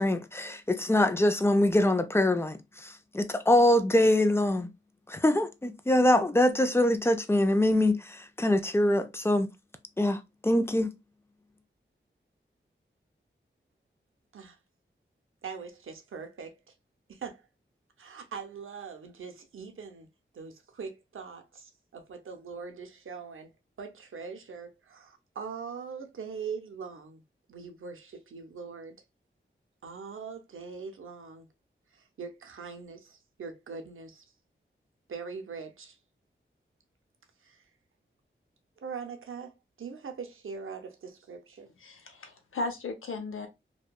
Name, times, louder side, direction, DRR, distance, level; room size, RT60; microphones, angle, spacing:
voice 1, 0.0-4.7 5.1-9.5 10.0-10.9, left 1 dB, 10° left, 0.4 m, -24 dB
voice 2, 15.4-16.7 17.1-17.4 18.0-20.1 20.3-23.5 23.8-27.2 27.5-29.0 29.8-31.5 31.9-34.2 35.1-36.0 37.4-37.6 38.8-41.7, right 5 dB, 85° right, 0.6 m, -42 dB
voice 3, 41.8-43.5, left 3 dB, 85° left, 0.6 m, -36 dB
2.6 x 2.2 x 2.2 m
wide cardioid pair, 60°, 21 cm